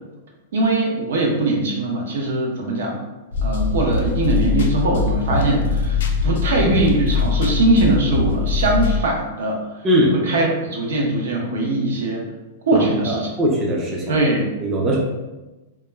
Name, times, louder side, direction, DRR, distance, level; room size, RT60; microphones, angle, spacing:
voice 1, 0.5-3.0 3.4-9.6 10.1-12.2 12.7-13.3 14.1-14.5, right 2 dB, 75° right, 0 dB, 0.6 m, -21 dB
sound 1, 3.3-9.0, left 4 dB, 75° left, 0.4 m, -22 dB
voice 2, 12.7-14.2 14.6-15.0, equal, 15° right, -3 dB, 0.3 m, -20 dB
2.2 x 2.1 x 3.2 m, 1.1 s
supercardioid pair, 175°, 0 cm